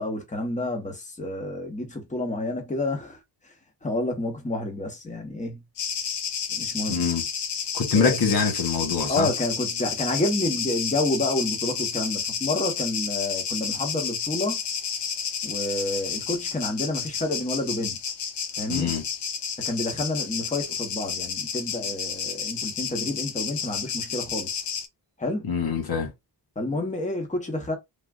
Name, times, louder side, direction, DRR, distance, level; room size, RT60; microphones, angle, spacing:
voice 1, 0.0-3.2 3.4-3.5 3.8-5.6 6.5-7.1 7.9-8.2 9.1-14.6 15.4-18.0 18.6-18.9 19.6-24.6 25.2-25.5 26.6-27.8, left 2 dB, 15° left, 1.1 m, -29 dB
sound 1, 5.8-24.9, left 7 dB, 80° left, 0.7 m, -31 dB
voice 2, 6.9-7.2 7.7-9.3 18.7-19.0 25.4-26.1, left 5 dB, 60° left, 1.1 m, -24 dB
3.5 x 2.4 x 2.4 m
wide cardioid pair, 105°, 41 cm